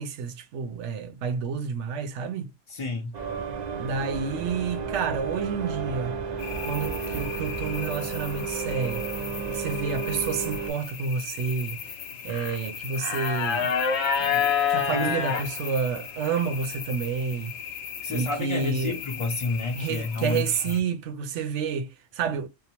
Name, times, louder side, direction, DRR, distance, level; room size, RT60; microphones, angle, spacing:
voice 1, 0.0-2.5 3.7-6.2 6.7-9.1 9.5-11.9 12.2-13.7 14.2-17.5 18.1-19.0 19.7-22.5, right 6 dB, 85° right, 0.9 m, -29 dB
voice 2, 2.7-3.1 14.9-15.1 18.0-20.7, left 3 dB, 40° left, 0.4 m, -30 dB
sound 1, 3.1-10.7, right 5 dB, 45° right, 0.6 m, -32 dB
sound 2, 6.4-20.8, left 7 dB, 75° left, 0.8 m, -32 dB
2.7 x 2.0 x 2.8 m
omnidirectional pair, 1.2 m